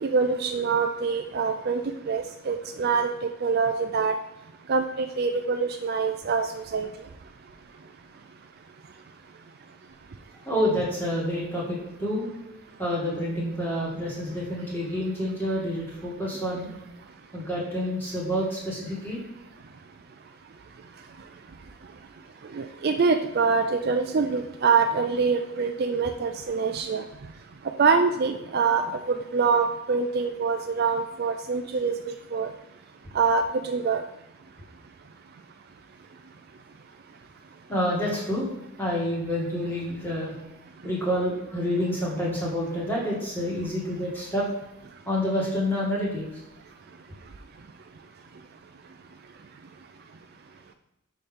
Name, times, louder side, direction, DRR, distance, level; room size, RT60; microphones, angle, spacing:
voice 1, 0.0-4.1 4.7-6.9 22.5-27.0 27.8-32.5 33.1-34.0, right 5 dB, 45° right, 7 dB, 0.4 m, -25 dB
voice 2, 10.4-16.7 17.3-19.2 37.7-38.5 38.8-40.3 40.8-44.4 45.0-46.3, equal, 10° left, -6 dB, 2.2 m, -28 dB
6.8 x 5.2 x 3.6 m, 0.92 s
head